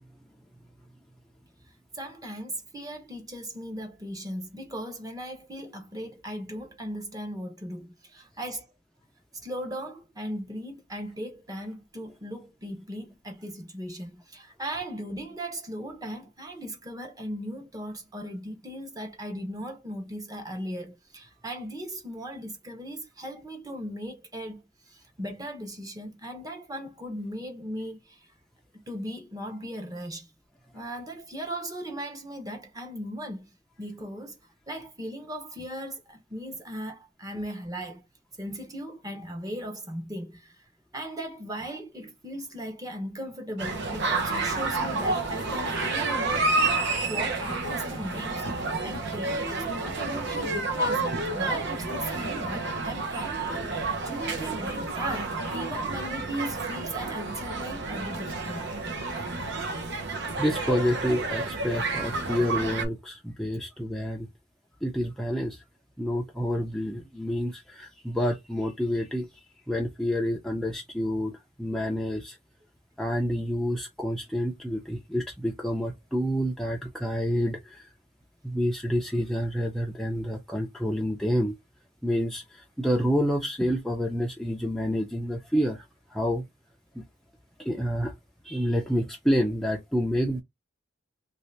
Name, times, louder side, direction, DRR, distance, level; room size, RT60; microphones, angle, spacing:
voice 1, 1.9-8.7 9.4-28.3 28.7-30.3 30.7-33.5 33.8-34.4 34.7-38.0 38.4-40.6 40.9-46.7 47.1-51.1 51.3-53.7 54.0-58.7, equal, 20° right, 0.9 m, -37 dB
sound 1, 43.6-62.9, right 3 dB, 60° right, 0.8 m, -30 dB
voice 2, 60.4-64.3 64.8-65.6 66.0-69.3 69.7-72.4 73.0-77.9 78.4-81.6 82.0-85.8 86.1-86.5 86.9-87.0 87.6-88.2 88.4-90.4, equal, ahead, 0.5 m, -28 dB
3.2 x 2.7 x 3.2 m
head